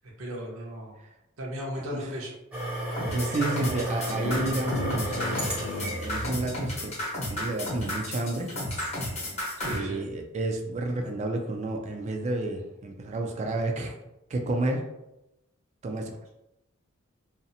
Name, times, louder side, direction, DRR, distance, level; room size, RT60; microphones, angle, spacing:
voice 1, 0.2-0.9 1.4-2.3 9.6-10.0, equal, 75° right, -2 dB, 0.7 m, -35 dB
sound 1, 2.5-9.7, right 1 dB, 5° right, 0.6 m, -35 dB
sound 2, 3.0-9.8, left 1 dB, 35° left, 0.9 m, -32 dB
voice 2, 3.1-5.4 5.8-7.0 7.3-8.5 9.7-14.0 14.3-14.8 15.8-16.1, right 2 dB, 35° right, 3 dB, 0.3 m, -31 dB
sound 3, 4.1-7.2, left 3 dB, 85° left, 0.4 m, -37 dB
2.6 x 2.0 x 2.6 m, 0.89 s
head